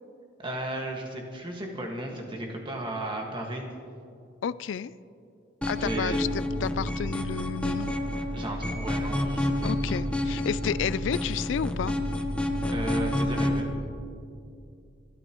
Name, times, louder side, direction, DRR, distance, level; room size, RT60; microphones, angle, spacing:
voice 1, 0.4-3.7 5.8-6.2 8.3-9.7 12.6-13.7, right 1 dB, 25° right, 0 dB, 1.7 m, -34 dB
voice 2, 4.4-4.9 5.7-6.3 6.6-8.0 9.6-12.0, left 7 dB, 80° left, 17 dB, 0.3 m, -31 dB
sound 1, 5.6-13.6, left 1 dB, 5° left, 0.9 m, -29 dB
26.5 x 12.0 x 3.0 m, 2.5 s
head